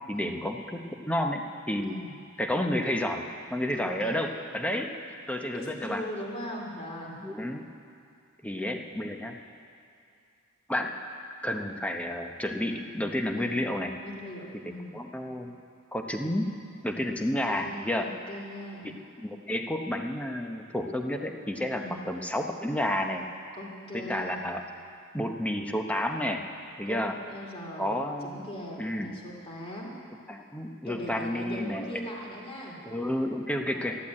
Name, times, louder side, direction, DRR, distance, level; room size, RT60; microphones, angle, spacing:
voice 1, 0.1-1.4 1.7-2.0 2.4-3.2 3.5-4.9 5.3-6.0 7.2-7.7 8.4-9.4 10.7-10.9 11.4-13.9 14.6-15.5 15.9-16.5 16.8-18.1 18.8-23.2 23.9-24.6 25.1-26.4 26.8-27.1 27.8-28.4 28.8-29.1 30.3-32.0 32.8-34.0, left 1 dB, 5° left, 3 dB, 0.9 m, -31 dB
voice 2, 3.7-4.2 5.5-7.2 13.3-13.6 14.0-15.0 17.0-17.1 17.4-18.9 21.7-22.0 23.6-24.4 26.9-27.0 27.3-28.0 28.2-29.9 30.8-32.8 33.2-34.0, left 1 dB, 25° left, -2 dB, 2.6 m, -40 dB
12.5 x 11.5 x 8.5 m, 2.5 s
head